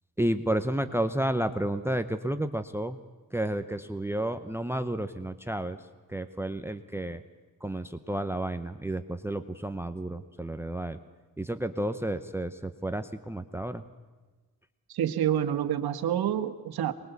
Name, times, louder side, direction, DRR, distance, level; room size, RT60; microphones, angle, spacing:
voice 1, 0.2-3.0 3.3-5.8 6.1-7.2 7.6-11.0 11.4-13.8, right 1 dB, 5° right, 11 dB, 0.8 m, -31 dB
voice 2, 14.9-16.9, right 10 dB, 80° right, 7 dB, 1.6 m, -28 dB
24.0 x 21.0 x 8.2 m, 1.3 s
cardioid pair, 140°, 37 cm